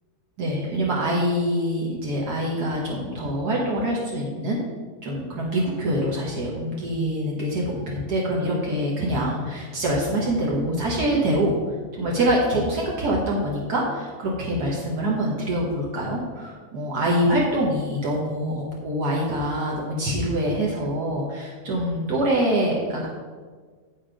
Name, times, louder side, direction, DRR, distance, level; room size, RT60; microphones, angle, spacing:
voice 1, 0.4-4.7 5.0-11.6 11.9-23.1, right 1 dB, 75° right, -4 dB, 1.8 m, -25 dB
7.8 x 6.4 x 5.0 m, 1.5 s
omnidirectional pair, 1.7 m